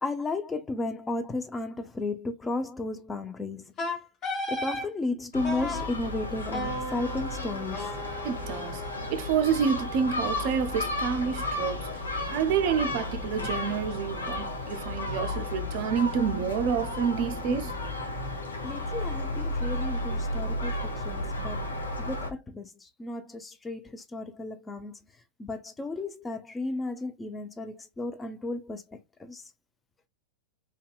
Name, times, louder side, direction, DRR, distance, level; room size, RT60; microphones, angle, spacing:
voice 1, 0.0-3.7 4.5-7.9 18.6-21.7 22.0-25.0 25.4-29.4, left 2 dB, 15° left, 0.4 m, -34 dB
Wind instrument woodwind instrument, 3.8-4.9 5.4-5.9 6.5-9.5, left 1 dB, 35° left, 1.4 m, -35 dB
Gull seagull, 5.3-22.3, left 2 dB, 75° left, 0.6 m, -33 dB
voice 2, 8.2-8.8 9.1-11.9 12.3-17.8, right 7 dB, 45° right, 0.4 m, -28 dB
2.7 x 2.2 x 2.3 m
figure-of-eight pair, 90°, 0 cm